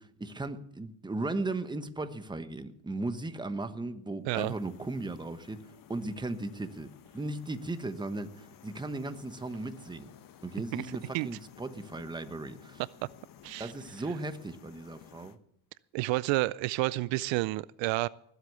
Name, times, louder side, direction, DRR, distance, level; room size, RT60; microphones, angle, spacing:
voice 1, 0.0-10.1 10.4-12.8 13.6-15.4, right 2 dB, 10° right, 1.1 m, -37 dB
sound 1, 4.4-15.4, left 9 dB, 45° left, 1.0 m, -55 dB
voice 2, 15.9-18.1, right 20 dB, 70° right, 0.5 m, -30 dB
19.0 x 8.2 x 6.9 m
cardioid pair, 110°, 47 cm